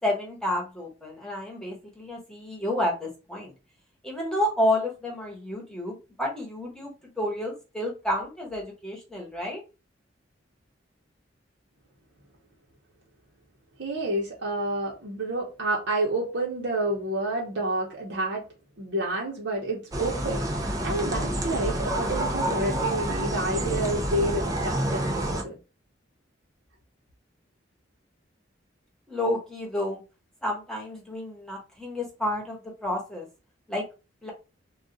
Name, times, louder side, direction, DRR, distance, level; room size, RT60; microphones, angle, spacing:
voice 1, 0.0-3.5 4.0-9.6 29.1-30.0 30.4-33.3 33.7-33.8 34.2-34.3, left 1 dB, 5° left, 1.0 m, -30 dB
voice 2, 13.8-18.4 18.8-25.6, right 1 dB, 65° right, 0.8 m, -29 dB
sound 1, 19.9-25.4, right 1 dB, 20° right, 0.5 m, -28 dB
2.4 x 2.3 x 3.9 m
head